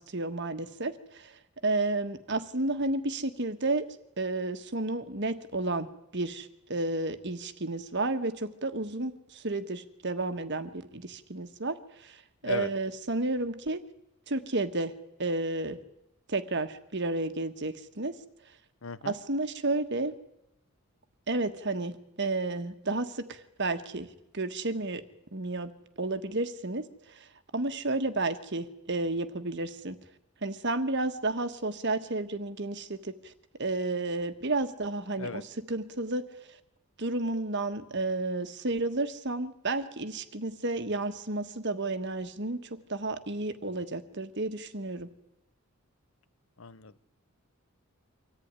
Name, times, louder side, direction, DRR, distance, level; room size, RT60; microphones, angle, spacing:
voice 1, 0.0-3.9 4.2-5.9 6.1-13.8 14.3-14.9 15.2-15.8 16.3-18.2 19.0-20.1 21.3-25.0 25.3-25.7 26.0-27.3 27.5-30.0 30.4-33.3 33.6-36.3 37.0-45.1, right 2 dB, 55° right, 9 dB, 1.5 m, -32 dB
voice 2, 18.8-19.2 35.2-35.4 46.6-47.1, left 4 dB, 65° left, 15 dB, 0.9 m, -37 dB
24.5 x 14.5 x 9.7 m, 0.87 s
head